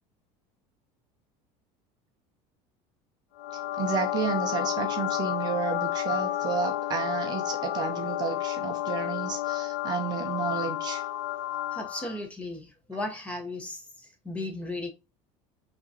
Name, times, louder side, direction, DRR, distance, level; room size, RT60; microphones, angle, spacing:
sound 1, 3.4-12.2, left 13 dB, 65° left, 0.6 m, -31 dB
voice 1, 3.5-11.0, right 7 dB, 30° right, 0.5 m, -32 dB
voice 2, 11.7-14.9, left 2 dB, 10° left, 0.8 m, -36 dB
5.8 x 2.9 x 2.7 m
cardioid pair, 180°, 14 cm